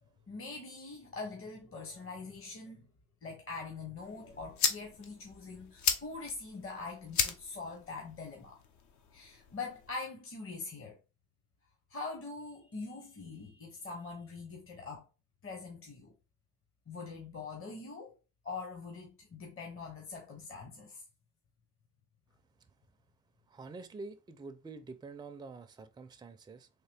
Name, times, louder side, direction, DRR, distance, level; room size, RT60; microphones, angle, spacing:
voice 1, 0.3-2.9 3.2-8.6 9.1-11.0 11.9-15.1 15.4-16.1 16.9-18.1 18.4-21.0, left 4 dB, 45° left, 1.0 m, -43 dB
sound 1, 4.0-10.0, left 6 dB, 70° left, 0.7 m, -37 dB
voice 2, 23.5-26.7, right 3 dB, 15° right, 0.4 m, -47 dB
3.7 x 2.7 x 3.3 m
cardioid pair, 90°, 30 cm